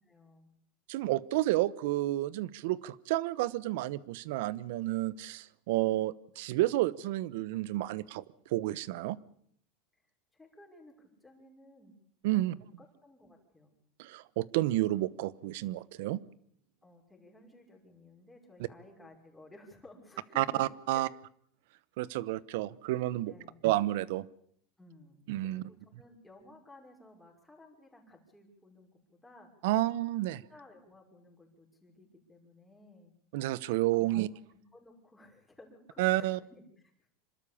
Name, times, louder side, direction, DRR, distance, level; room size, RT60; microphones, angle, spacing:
voice 1, 0.0-0.5 9.9-10.0 10.3-12.0 12.3-13.7 16.8-20.6 20.9-21.1 23.3-23.6 24.8-29.5 30.3-33.1 33.9-34.2 34.5-36.6, left 2 dB, 5° left, 0 dB, 5.6 m, -56 dB
voice 2, 0.9-8.2 8.5-9.2 12.2-12.5 14.0-16.2 20.4-21.1 22.0-23.3 23.6-24.3 25.3-25.6 29.6-30.4 33.3-34.3 36.0-36.4, right 16 dB, 70° right, 20 dB, 0.9 m, -30 dB
26.5 x 13.0 x 8.6 m, 0.66 s
supercardioid pair, 140°, 0 cm